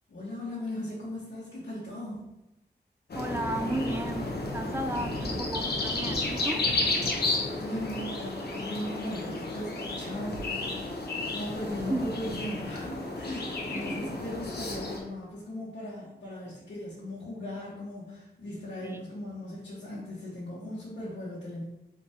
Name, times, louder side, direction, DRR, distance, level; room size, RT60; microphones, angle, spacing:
voice 1, 0.1-2.2 7.5-21.6, left 1 dB, 90° left, -10 dB, 1.2 m, -38 dB
sound 1, 3.1-15.0, left 2 dB, 65° left, 0.8 m, -32 dB
voice 2, 3.1-6.7 11.9-12.1 13.9-14.1 18.8-19.0, right 2 dB, 15° right, 6 dB, 0.3 m, -33 dB
4.3 x 3.5 x 2.8 m, 0.91 s
wide cardioid pair, 130°, 18 cm